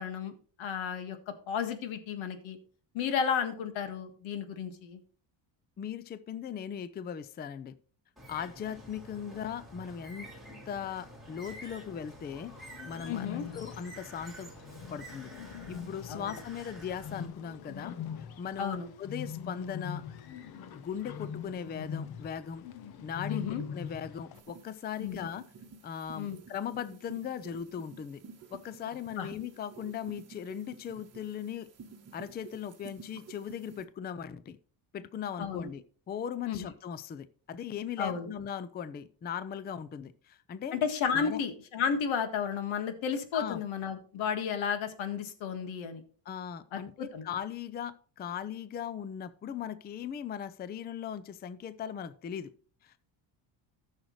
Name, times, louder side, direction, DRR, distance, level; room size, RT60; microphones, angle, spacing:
voice 1, 0.0-2.6 2.9-5.0 13.1-13.5 16.1-16.4 18.6-18.9 23.3-23.6 25.0-25.3 26.1-26.4 29.2-29.3 35.4-35.7 36.5-36.7 38.0-38.3 40.7-46.0 46.7-47.2, left 7 dB, 75° left, 8 dB, 1.8 m, -33 dB
voice 2, 5.8-7.7 8.3-10.3 10.7-12.5 12.8-14.5 14.9-15.3 15.7-20.0 20.7-22.6 23.0-25.4 25.8-28.2 28.5-31.7 32.1-34.6 34.9-40.8 41.1-41.4 43.3-43.6 46.3-52.5 52.8-53.0, left 8 dB, 20° left, 14 dB, 0.4 m, -39 dB
Bird, 8.2-17.3, right 1 dB, ahead, 3.4 m, -49 dB
Bird 2, 12.2-24.4, left 7 dB, 50° left, 0.9 m, -43 dB
sound 1, 24.3-33.8, right 5 dB, 35° right, 1.2 m, -52 dB
14.5 x 6.5 x 3.1 m, 0.42 s
cardioid pair, 155°, 47 cm